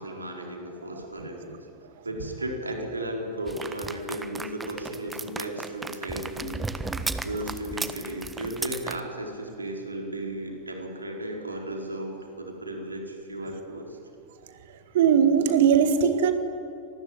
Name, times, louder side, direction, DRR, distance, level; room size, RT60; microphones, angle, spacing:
voice 1, 0.0-1.7 2.0-6.6 7.2-14.0, right 1 dB, 80° right, 2 dB, 4.5 m, -35 dB
sound 1, 3.5-9.0, right 3 dB, 10° right, 1.4 m, -35 dB
voice 2, 14.9-16.3, right 7 dB, 55° right, 9 dB, 1.8 m, -19 dB
26.5 x 20.5 x 9.8 m, 2.9 s
figure-of-eight pair, 90°, 0 cm